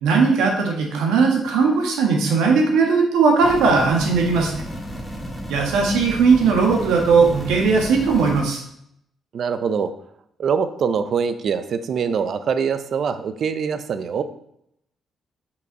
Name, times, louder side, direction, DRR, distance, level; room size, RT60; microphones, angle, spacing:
voice 1, 0.0-4.5 5.5-8.6, right 4 dB, 90° right, 1 dB, 1.4 m, -18 dB
sound 1, 3.4-8.4, equal, 5° left, 1.3 m, -33 dB
voice 2, 9.3-9.9 10.4-14.2, right 6 dB, 60° right, 11 dB, 0.5 m, -23 dB
5.8 x 3.9 x 4.6 m, 0.74 s
cardioid pair, 90°, 0 cm